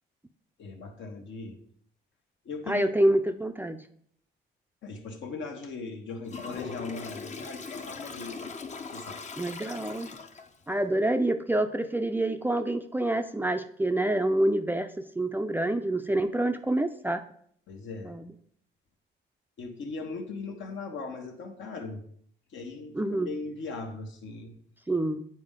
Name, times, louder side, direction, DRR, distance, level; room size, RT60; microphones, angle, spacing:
voice 1, 0.6-1.6 2.4-2.9 4.8-8.5 8.9-9.2 17.7-18.1 19.6-22.0 22.5-24.5, left 4 dB, 70° left, 3 dB, 1.3 m, -39 dB
voice 2, 2.7-3.8 9.4-10.1 10.7-17.2 18.1-18.3 23.0-23.3 24.9-25.2, right 1 dB, 10° right, 7 dB, 0.4 m, -27 dB
Toilet flush, 6.3-10.6, left 4 dB, 35° left, 0.7 m, -40 dB
8.8 x 4.4 x 3.7 m, 0.64 s
cardioid pair, 90°, 20 cm